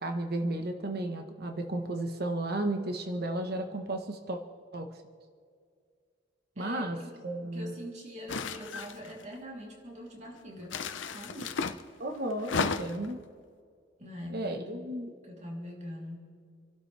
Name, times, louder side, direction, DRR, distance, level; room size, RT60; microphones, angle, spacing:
voice 1, 0.0-4.4 4.7-4.9 6.6-7.0 7.2-7.7 12.0-13.2 14.3-15.1, right 1 dB, 55° right, 5 dB, 1.3 m, -33 dB
voice 2, 6.6-10.8 11.1-11.6 14.0-14.9 15.2-16.3, equal, 40° right, -2 dB, 3.3 m, -43 dB
sound 1, 8.3-9.2 10.7-11.8 12.4-13.1, left 5 dB, 80° left, 0.7 m, -33 dB
28.5 x 12.0 x 3.4 m, 2.1 s
head